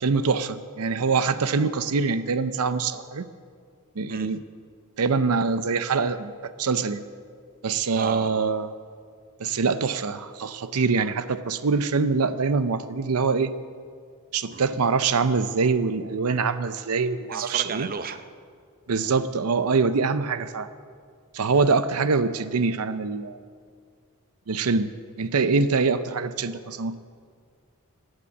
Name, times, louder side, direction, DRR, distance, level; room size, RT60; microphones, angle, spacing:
voice 1, 0.0-3.3 4.0-4.4 5.0-7.0 7.6-8.7 9.4-13.5 14.3-17.9 18.9-20.7 21.3-23.4 24.5-24.9 25.2-26.9, right 4 dB, 90° right, 12 dB, 0.6 m, -24 dB
voice 2, 8.0-8.4 14.5-14.7 17.3-18.2 19.0-19.2, right 5 dB, 40° right, 10 dB, 0.7 m, -33 dB
15.5 x 9.8 x 8.4 m, 2.1 s
head